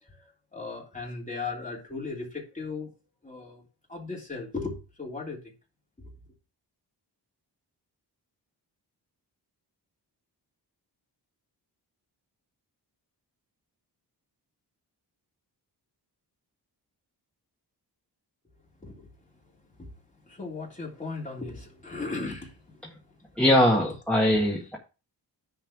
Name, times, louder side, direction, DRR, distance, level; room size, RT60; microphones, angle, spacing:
voice 1, 0.0-2.9 3.2-3.6 3.9-5.5 18.8-19.1 19.8-19.9 20.2-22.8 23.1-23.2 23.8-23.9 24.3-24.4, left 3 dB, 20° left, 3.3 m, -37 dB
voice 2, 23.4-24.8, left 1 dB, 5° left, 1.7 m, -21 dB
10.0 x 3.5 x 6.0 m
wide cardioid pair, 135°, 41 cm